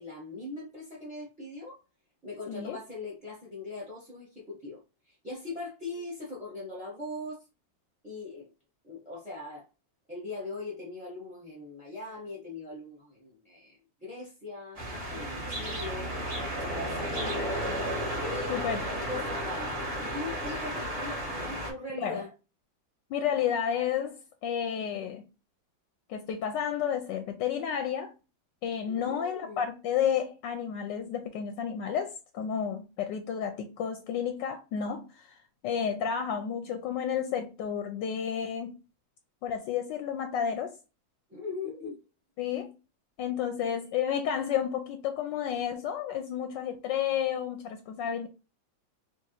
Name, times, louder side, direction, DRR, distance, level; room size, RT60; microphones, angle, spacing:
voice 1, 0.0-1.8 2.2-7.4 8.0-8.5 8.8-9.6 10.1-14.8 15.1-16.2 16.8-17.6 18.1-19.7 20.0-22.3 28.9-29.6 41.3-41.9, left 3 dB, 5° right, 0.8 m, -40 dB
voice 2, 2.5-2.8 18.5-18.8 22.0-22.2 23.1-25.2 26.1-28.1 28.6-35.4 35.6-38.7 39.4-40.8 42.4-42.7 43.2-48.3, left 8 dB, 75° left, 1.2 m, -31 dB
sound 1, 14.8-21.7, right 1 dB, 20° right, 1.2 m, -33 dB
4.7 x 2.5 x 2.9 m
omnidirectional pair, 2.1 m